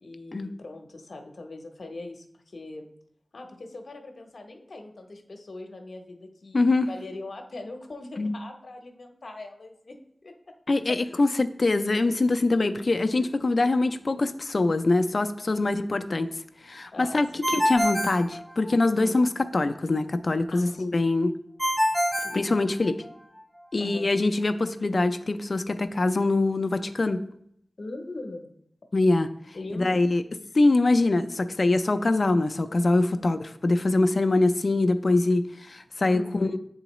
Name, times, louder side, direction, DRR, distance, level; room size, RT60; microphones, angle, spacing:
voice 1, 0.0-2.9 3.3-10.6 10.9-11.3 13.2-13.3 15.5-15.8 16.9-17.5 19.0-19.2 20.5-20.8 21.7-21.8 22.1-22.4 23.8-24.2 27.8-28.5 29.5-30.0 33.0-33.3 36.1-36.5, left 2 dB, 70° left, 4 dB, 0.7 m, -41 dB
voice 2, 6.5-6.9 8.2-8.4 10.7-16.3 16.6-17.3 17.5-21.3 22.3-23.0 23.7-27.2 28.9-29.3 29.8-30.2 30.5-36.6, left 2 dB, 55° left, 9 dB, 0.4 m, -23 dB
Ringtone, 17.4-19.1 21.6-23.2, equal, 15° right, 0.6 m, -26 dB
8.9 x 3.9 x 3.0 m, 0.71 s
wide cardioid pair, 80°, 0 cm